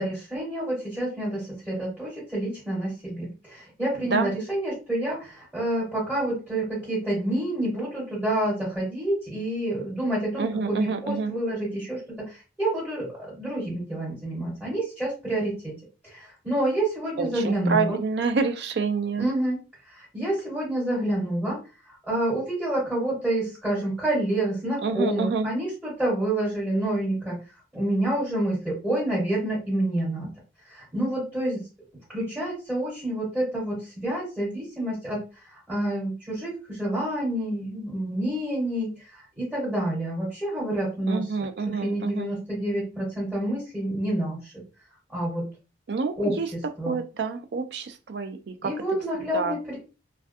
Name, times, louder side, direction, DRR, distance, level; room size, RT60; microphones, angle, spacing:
voice 1, 0.0-15.7 16.0-18.0 19.2-19.6 19.9-21.6 21.9-27.4 27.7-30.3 30.7-31.7 32.1-41.2 41.6-44.5 45.1-45.5 46.2-47.0 48.6-49.8, right 1 dB, ahead, -7 dB, 1.3 m, -28 dB
voice 2, 10.4-11.3 17.2-19.3 24.8-25.5 41.1-42.3 45.9-46.5 46.9-48.7 49.3-49.6, right 4 dB, 60° right, 7 dB, 0.4 m, -27 dB
2.3 x 2.2 x 2.5 m, 0.32 s
head